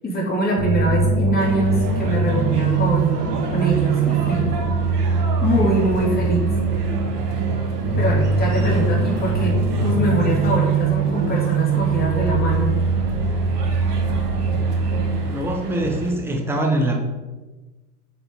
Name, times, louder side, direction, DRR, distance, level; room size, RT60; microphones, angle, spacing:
voice 1, 0.0-4.5 5.4-6.5 7.9-12.8, right 1 dB, 20° left, -3 dB, 2.9 m, -23 dB
sound 1, 0.6-15.2, right 4 dB, 40° right, 1.9 m, -22 dB
sound 2, 1.4-16.1, right 2 dB, 90° right, 2.0 m, -32 dB
voice 2, 15.2-16.9, right 1 dB, 5° right, 1 dB, 1.3 m, -23 dB
8.7 x 4.4 x 5.4 m, 1.2 s
hypercardioid pair, 110°, 46 cm